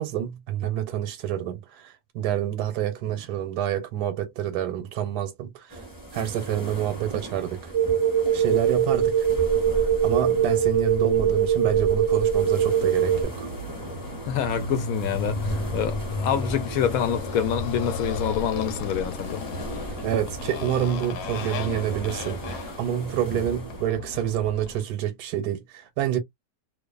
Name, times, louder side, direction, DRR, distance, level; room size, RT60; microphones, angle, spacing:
voice 1, 0.0-5.8 6.1-7.7 8.3-9.3 9.8-13.5 20.0-26.2, right 11 dB, 80° right, 1.1 m, -28 dB
sound 1, 5.7-23.9, right 2 dB, 15° left, 1.1 m, -37 dB
sound 2, 7.7-13.2, right 8 dB, 60° right, 0.9 m, -22 dB
Motorcycle, 12.1-24.8, left 4 dB, 85° left, 1.2 m, -34 dB
voice 2, 14.3-19.4, left 8 dB, 70° left, 1.0 m, -26 dB
2.5 x 2.3 x 2.2 m
omnidirectional pair, 1.7 m